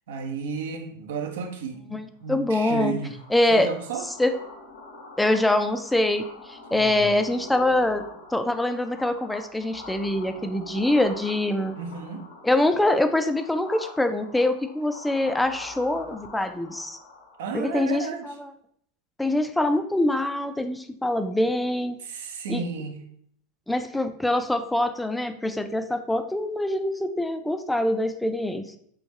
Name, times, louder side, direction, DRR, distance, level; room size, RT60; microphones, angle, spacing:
voice 1, 0.1-3.1 3.5-4.0 6.7-6.9 11.8-12.3 17.4-18.3 22.0-22.9, right 5 dB, 75° right, 0.6 m, -32 dB
voice 2, 1.9-2.9 3.3-3.7 4.0-4.3 5.2-8.0 8.3-11.8 12.4-17.0 17.5-18.5 19.2-22.0 22.5-22.6 23.7-28.8, left 1 dB, 5° left, 0.3 m, -24 dB
sound 1, 2.4-17.7, left 2 dB, 75° left, 1.2 m, -44 dB
3.5 x 3.0 x 3.1 m
hypercardioid pair, 105°, 0 cm